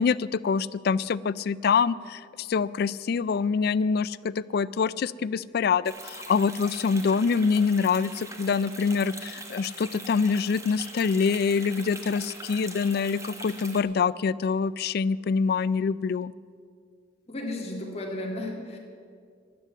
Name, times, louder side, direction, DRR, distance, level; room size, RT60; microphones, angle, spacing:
voice 1, 0.0-16.3, left 5 dB, 55° left, 18 dB, 0.3 m, -25 dB
sound 1, 5.8-13.8, right 2 dB, 15° right, 1.2 m, -42 dB
voice 2, 17.3-18.8, left 1 dB, 35° left, 0 dB, 2.2 m, -34 dB
13.0 x 9.8 x 8.1 m, 2.2 s
head